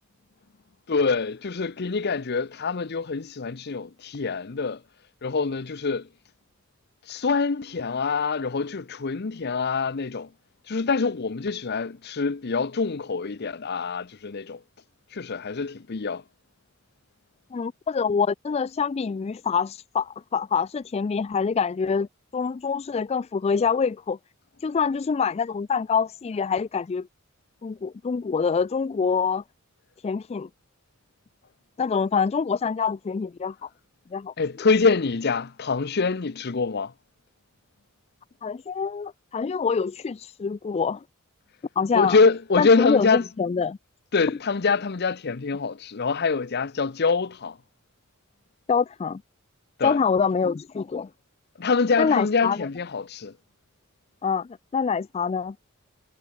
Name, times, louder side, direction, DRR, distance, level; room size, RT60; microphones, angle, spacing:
voice 1, 0.9-4.8 5.2-6.1 7.1-10.3 10.7-14.6 15.1-16.2 34.4-36.9 41.9-43.2 44.1-47.6 49.8-50.0 51.6-53.3, left 4 dB, 50° left, 0.7 m, -25 dB
voice 2, 17.5-22.1 22.3-24.2 24.6-27.1 27.6-29.4 30.0-30.5 31.8-33.7 34.1-34.3 38.4-41.0 41.8-42.2 42.6-43.8 48.7-49.2 49.8-51.1 52.0-52.7 54.2-55.6, left 5 dB, 30° left, 0.3 m, -25 dB
head